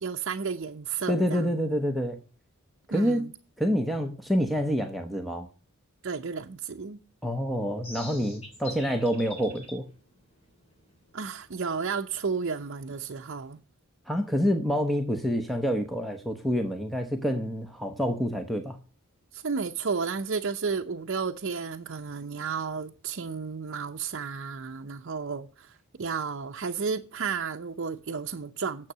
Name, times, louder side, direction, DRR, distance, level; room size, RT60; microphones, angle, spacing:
voice 1, 0.0-1.5 2.9-3.3 6.0-7.0 11.1-13.6 19.3-28.9, right 5 dB, 60° right, 0.6 m, -32 dB
voice 2, 1.1-2.2 2.9-3.3 3.6-5.5 7.2-9.9 14.1-18.8, equal, ahead, 0.8 m, -27 dB
sound 1, 7.7-13.6, left 1 dB, 30° left, 3.0 m, -47 dB
9.6 x 7.4 x 6.7 m
head